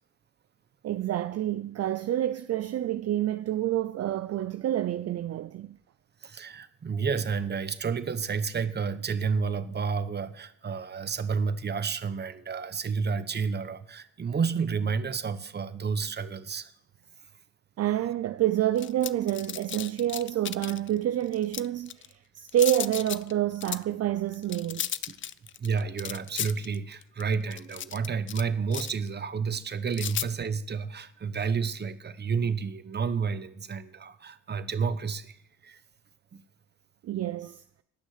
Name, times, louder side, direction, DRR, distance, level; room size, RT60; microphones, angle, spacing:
voice 1, 0.8-5.8 17.8-24.9 37.0-37.6, right 12 dB, 55° right, 0.5 m, -28 dB
voice 2, 6.2-16.7 25.6-35.4 35.6-35.8 36.3-36.4, right 5 dB, 35° right, 1.0 m, -30 dB
sound 1, 18.8-20.9 21.3-22.1 22.5-23.3 23.6-23.8 24.3-28.4 28.7-29.1 29.9-30.2, left 10 dB, 40° left, 0.5 m, -34 dB
18.5 x 6.3 x 6.6 m
cardioid pair, 90°, 30 cm